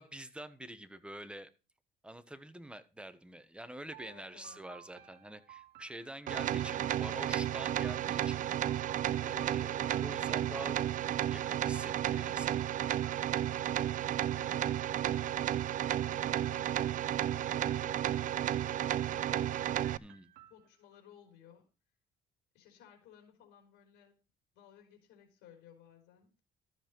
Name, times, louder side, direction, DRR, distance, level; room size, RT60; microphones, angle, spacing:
voice 1, 0.0-1.5 2.0-8.9 9.2-10.8 11.3-12.7 20.0-20.3, right 1 dB, 5° right, 12 dB, 1.2 m, -46 dB
sound 1, 3.9-6.7 7.8-10.8 11.7-13.9 14.4-15.0 15.4-16.1 16.4-17.1 17.5-18.1 18.5-21.0, right 13 dB, 80° right, 1.2 m, -59 dB
voice 2, 4.0-4.6 14.4-15.5 16.0-18.1 18.6-19.6 20.5-21.7 22.5-24.2 24.5-26.3, left 9 dB, 80° left, 3 dB, 3.9 m, -58 dB
sound 2, 6.3-20.0, right 11 dB, 50° right, 0.5 m, -33 dB
13.0 x 7.2 x 4.6 m, 0.31 s
cardioid pair, 110°, 17 cm